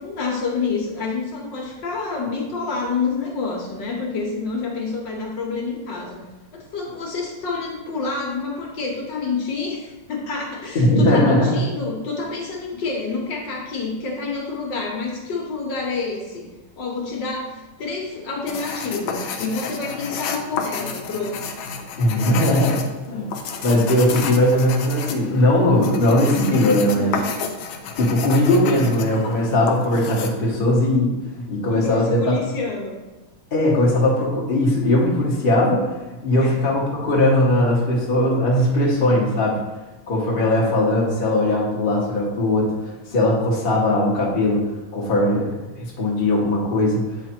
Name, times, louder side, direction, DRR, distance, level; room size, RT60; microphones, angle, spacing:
voice 1, 0.0-6.2 6.5-16.5 16.8-21.6 26.6-27.3 31.7-33.0 36.4-36.6, left 4 dB, 65° left, -1 dB, 1.7 m, -28 dB
voice 2, 10.7-11.5 22.0-23.3 23.6-27.2 28.0-31.1 31.5-32.4 33.5-35.8 36.2-39.6 40.1-44.6 44.9-47.0, left 1 dB, 30° left, -4 dB, 1.2 m, -19 dB
sound 1, 18.5-30.3, left 5 dB, 80° left, 1.4 m, -31 dB
8.1 x 3.3 x 4.3 m, 1.1 s
omnidirectional pair, 2.2 m